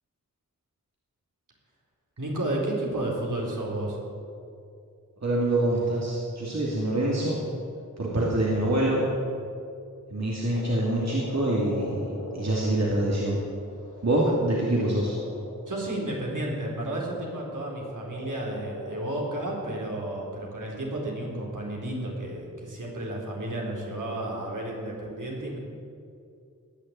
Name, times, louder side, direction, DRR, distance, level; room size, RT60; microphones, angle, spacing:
voice 1, 2.2-4.0 15.7-25.6, right 1 dB, 75° right, -3 dB, 4.0 m, -32 dB
voice 2, 5.2-7.4 8.0-9.1 10.1-13.4 14.0-15.1, right 1 dB, 55° right, -5 dB, 2.7 m, -25 dB
Frog, 10.5-16.4 17.2-19.8, left 1 dB, 85° left, 4.5 m, -41 dB
20.0 x 6.8 x 8.8 m, 2.5 s
wide cardioid pair, 50°, 32 cm